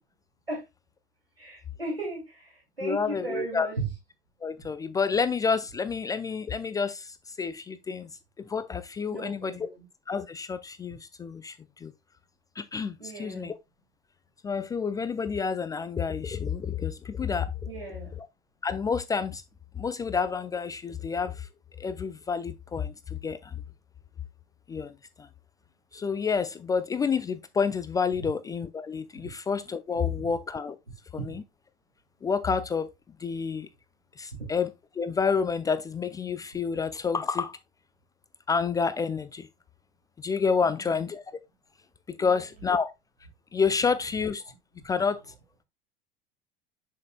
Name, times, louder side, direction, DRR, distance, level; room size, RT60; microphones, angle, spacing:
voice 1, 1.4-2.2 2.8-3.9 9.1-9.8 13.0-13.5 17.6-18.1 40.6-41.0 42.2-42.4, right 2 dB, 90° right, 2.6 m, -36 dB
voice 2, 2.8-3.7 4.4-8.1 8.4-9.7 10.1-11.6 11.8-11.9 12.6-13.5 14.4-17.5 18.6-19.4 19.8-21.5 21.8-23.6 24.7-24.9 25.2-25.3 25.9-30.8 31.1-31.4 32.2-32.9 33.2-33.7 34.2-37.6 38.5-39.5 40.2-41.2 42.1-42.9 43.5-44.4 44.8-45.2, left 5 dB, 15° left, 0.3 m, -29 dB
7.2 x 6.4 x 2.2 m
figure-of-eight pair, 75°, 30 cm